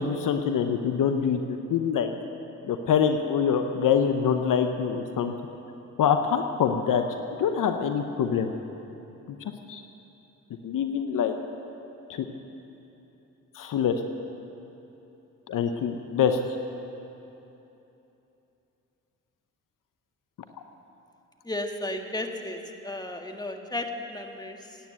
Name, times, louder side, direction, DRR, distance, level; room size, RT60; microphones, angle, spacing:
voice 1, 0.0-2.1 2.7-5.3 6.0-7.0 7.4-8.5 9.7-9.8 10.6-11.3 12.1-12.3 13.5-13.9 15.5-16.4, left 7 dB, 65° left, 7 dB, 1.0 m, -25 dB
voice 2, 21.5-22.6 22.8-24.6, left 2 dB, 10° left, 4 dB, 1.8 m, -33 dB
17.0 x 9.5 x 8.3 m, 3.0 s
hypercardioid pair, 45°, 34 cm